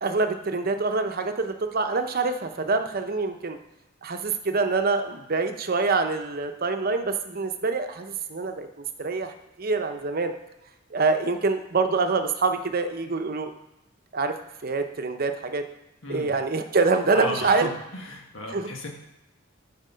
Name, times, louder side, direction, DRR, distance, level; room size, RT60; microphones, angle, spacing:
voice 1, 0.0-3.6 4.0-8.7 9.0-9.3 9.6-10.3 10.9-13.5 14.1-14.3 14.6-15.6 16.1-17.7 18.5-18.7, right 3 dB, 45° right, 7 dB, 0.7 m, -25 dB
voice 2, 16.0-16.3 17.1-18.9, left 2 dB, 70° left, 1 dB, 1.5 m, -35 dB
10.0 x 4.3 x 5.6 m, 0.93 s
head